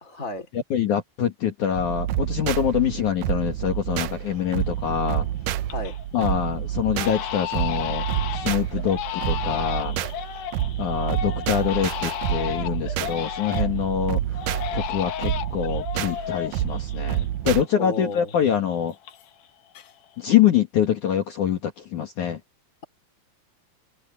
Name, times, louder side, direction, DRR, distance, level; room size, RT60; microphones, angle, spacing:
voice 1, 0.0-0.5 5.7-6.0 17.8-18.3, left 3 dB, 20° left, 3.8 m, -32 dB
voice 2, 0.5-5.3 6.1-8.0 8.3-10.0 10.8-14.2 14.7-18.9 20.2-22.4, left 9 dB, 55° left, 3.1 m, -25 dB
sound 1, 1.8-17.6, right 12 dB, 75° right, 2.1 m, -28 dB
Crying sobbing, 3.8-3.9 4.3-4.8 5.2-6.0 6.3-6.5 6.9-13.9 14.3-17.7 17.9-19.5 19.7-20.3, left 12 dB, 70° left, 3.1 m, -33 dB
omnidirectional pair, 4.4 m